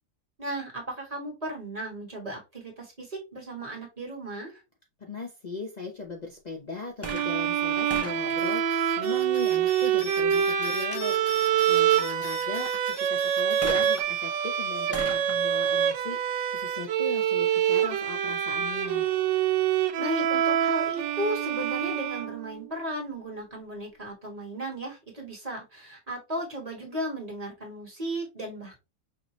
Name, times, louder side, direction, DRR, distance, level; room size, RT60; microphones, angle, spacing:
voice 1, 0.4-4.6 20.0-28.8, right 1 dB, 20° right, -1 dB, 1.4 m, -35 dB
voice 2, 5.0-19.1, left 3 dB, 85° left, 1 dB, 0.3 m, -38 dB
sound 1, 6.9-9.5 13.6-17.2 18.0-18.1, right 1 dB, 10° left, 0.7 m, -42 dB
sound 2, 7.0-22.7, right 9 dB, 75° right, 1.2 m, -26 dB
sound 3, 8.2-14.0, left 5 dB, 55° left, 1.2 m, -43 dB
5.7 x 2.6 x 3.0 m, 0.25 s
omnidirectional pair, 2.0 m